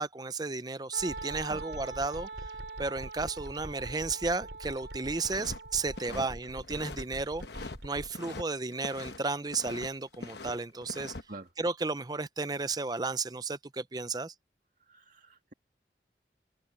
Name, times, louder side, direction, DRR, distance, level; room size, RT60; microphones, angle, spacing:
voice 1, 0.0-2.3 2.8-11.1 11.6-14.3, right 3 dB, 20° right, 0.6 m, -33 dB
Wind instrument woodwind instrument, 0.9-6.6, right 4 dB, 65° right, 3.4 m, -44 dB
sound 1, 1.0-8.1, equal, 90° right, 5.0 m, -45 dB
sound 2, 5.2-5.6 5.8-7.1 7.4-8.4 8.7-9.9 10.1-11.2, left 3 dB, 65° left, 1.1 m, -43 dB
voice 2, 14.9-15.5, right 2 dB, 45° right, 2.0 m, -46 dB
open air
head